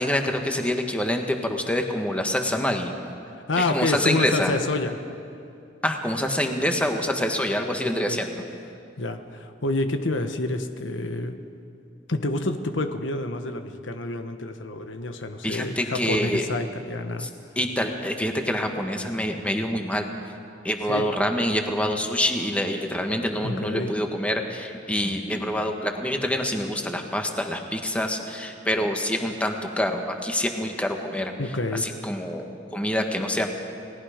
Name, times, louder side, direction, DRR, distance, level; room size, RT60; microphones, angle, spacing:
voice 1, 0.0-2.9 3.6-4.5 5.8-8.3 15.4-16.4 17.2-17.3 17.5-20.1 20.6-31.3 31.7-33.5, left 1 dB, 5° left, 3 dB, 1.5 m, -26 dB
voice 2, 3.5-5.0 7.3-7.4 8.1-8.2 9.0-11.4 12.1-17.3 20.9-21.1 23.4-23.9 31.4-31.9, left 2 dB, 80° left, 7 dB, 1.3 m, -28 dB
29.5 x 19.0 x 5.2 m, 2.5 s
head